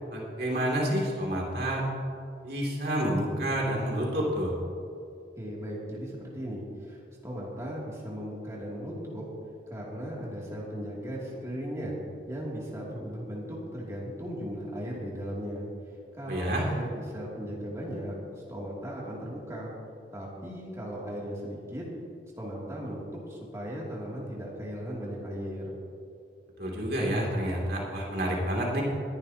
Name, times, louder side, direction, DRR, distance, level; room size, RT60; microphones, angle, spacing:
voice 1, 0.1-1.8 2.4-4.5 16.3-16.7 26.6-28.8, right 1 dB, 60° right, -2 dB, 2.7 m, -29 dB
voice 2, 5.4-9.3 9.7-11.9 12.3-18.1 18.5-19.7 20.1-21.8 22.4-25.7, equal, 15° right, -5 dB, 2.6 m, -37 dB
21.5 x 11.0 x 2.9 m, 2.5 s
head